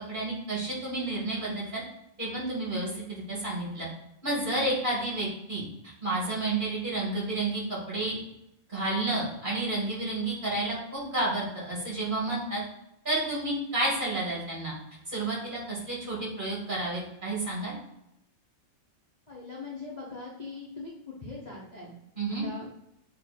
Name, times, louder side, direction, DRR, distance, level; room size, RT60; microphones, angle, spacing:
voice 1, 0.1-1.8 2.2-3.9 4.2-8.2 8.7-12.6 13.0-14.7 15.1-17.7 22.2-22.5, right 2 dB, 25° right, -5 dB, 2.4 m, -31 dB
voice 2, 19.3-22.0 22.3-22.7, left 3 dB, 30° left, -3 dB, 0.8 m, -41 dB
7.4 x 3.1 x 4.3 m, 0.81 s
omnidirectional pair, 2.1 m